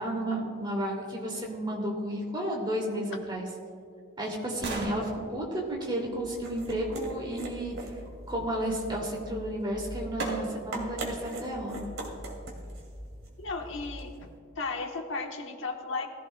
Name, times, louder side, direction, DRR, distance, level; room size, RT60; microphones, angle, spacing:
voice 1, 0.0-3.5 4.2-7.9 8.3-11.9, right 1 dB, 20° right, -1 dB, 2.4 m, -32 dB
sound 1, 3.3-7.2 9.3-9.4 10.2-10.9 11.4-11.5, right 2 dB, 65° right, 3.3 m, -40 dB
sound 2, 6.1-14.3, right 1 dB, 80° right, 2.3 m, -41 dB
voice 2, 13.4-14.3 14.5-16.1, left 3 dB, 65° left, 3 dB, 1.1 m, -35 dB
20.0 x 14.5 x 2.2 m, 2.2 s
head